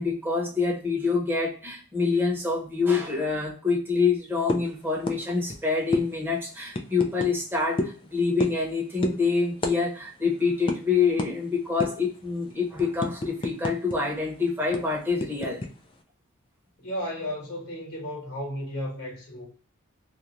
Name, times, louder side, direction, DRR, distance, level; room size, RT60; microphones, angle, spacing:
voice 1, 0.0-15.6, left 4 dB, 10° right, 0.9 m, -26 dB
sound 1, 4.5-4.7 5.1-5.2 5.5-5.6 5.9-6.1 6.7-7.3 7.8-8.0 8.4-8.7 9.0-9.2 9.6-9.8 10.0-10.2 10.7-10.8 11.2-11.3 11.8-12.1 12.5-14.0 14.2-14.3 14.7-15.7, left 1 dB, 25° left, 0.3 m, -29 dB
voice 2, 16.8-19.5, equal, 50° left, 1.1 m, -34 dB
2.5 x 2.3 x 2.9 m
head